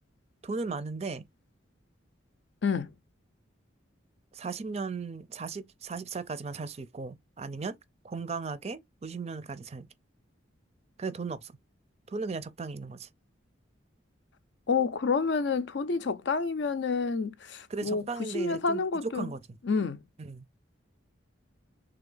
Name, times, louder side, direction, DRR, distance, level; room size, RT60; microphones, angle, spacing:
voice 1, 0.4-1.3 4.3-7.8 8.0-9.9 11.0-11.5 12.1-13.1 17.7-19.6 20.2-20.4, right 4 dB, 35° right, 0.5 m, -36 dB
voice 2, 14.7-18.0 18.3-19.2 19.6-20.0, left 4 dB, 65° left, 0.5 m, -28 dB
3.4 x 3.4 x 3.8 m
head